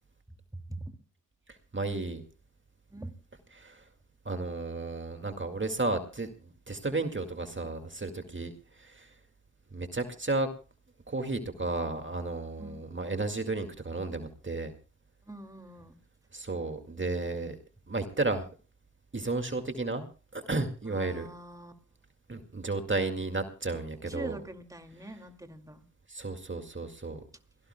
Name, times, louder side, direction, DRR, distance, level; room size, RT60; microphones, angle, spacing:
voice 1, 1.7-2.2 3.6-3.8 4.3-9.1 9.7-10.5 11.1-14.7 16.3-17.6 17.9-18.5 19.1-20.0 20.3-21.3 22.3-24.4 26.1-27.2, right 3 dB, 35° right, 6 dB, 2.1 m, -33 dB
voice 2, 15.2-16.0 20.8-21.7 24.1-25.9, right 1 dB, 10° right, 5 dB, 2.3 m, -43 dB
29.0 x 17.0 x 2.2 m, 0.35 s
cardioid pair, 40°, 32 cm